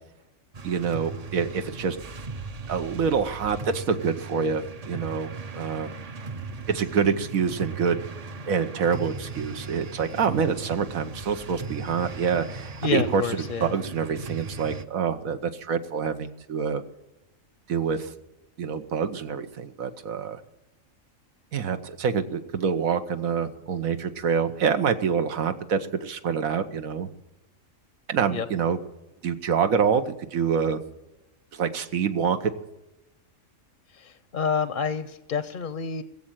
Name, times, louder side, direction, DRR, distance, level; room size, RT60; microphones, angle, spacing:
sound 1, 0.5-14.9, right 3 dB, 40° right, 0.6 m, -38 dB
voice 1, 0.6-2.0 2.7-5.9 6.7-8.0 8.5-13.2 13.6-16.8 17.7-18.1 18.6-20.4 21.5-27.1 28.1-28.8 29.2-30.0 30.3-30.8 31.5-32.5, right 6 dB, 85° right, 8 dB, 1.4 m, -26 dB
voice 2, 12.8-13.8 28.3-28.5 33.9-36.0, left 6 dB, 50° left, 12 dB, 0.7 m, -29 dB
20.5 x 7.6 x 9.0 m, 0.95 s
omnidirectional pair, 1.4 m